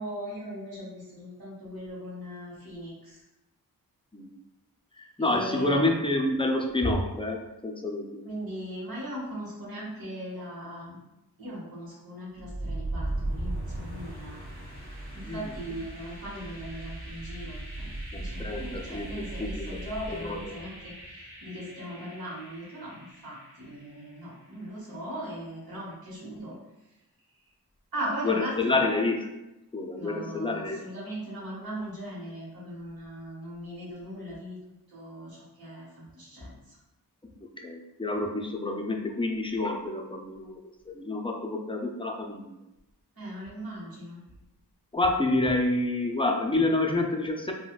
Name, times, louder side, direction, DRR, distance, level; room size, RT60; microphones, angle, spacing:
voice 1, 0.0-3.2 5.2-5.8 8.2-11.0 11.4-14.4 14.8-14.9 15.1-26.6 27.9-28.8 29.9-34.6 34.9-36.8 43.2-44.2, right 1 dB, 65° right, -7 dB, 1.1 m, -39 dB
voice 2, 5.0-8.3 15.2-15.5 18.4-19.7 20.2-20.5 28.2-29.3 29.7-30.8 37.6-40.6 40.9-42.6 44.9-47.5, left 2 dB, 15° left, 2 dB, 0.4 m, -28 dB
sound 1, 12.4-24.2, right 1 dB, 35° right, 1.4 m, -38 dB
3.9 x 2.2 x 2.3 m, 0.95 s
cardioid pair, 50°, 39 cm